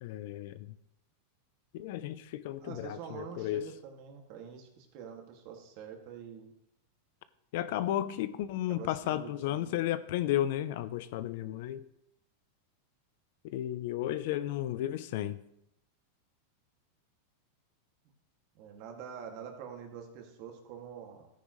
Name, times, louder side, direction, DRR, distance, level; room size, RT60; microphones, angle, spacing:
voice 1, 0.0-0.7 1.7-3.7 7.5-11.8 13.4-15.4, left 13 dB, 65° left, 14 dB, 0.7 m, -33 dB
voice 2, 2.6-6.5 8.7-9.8 18.5-21.3, right 7 dB, 55° right, 2 dB, 2.3 m, -46 dB
13.5 x 9.4 x 3.2 m, 0.80 s
supercardioid pair, 125°, 0 cm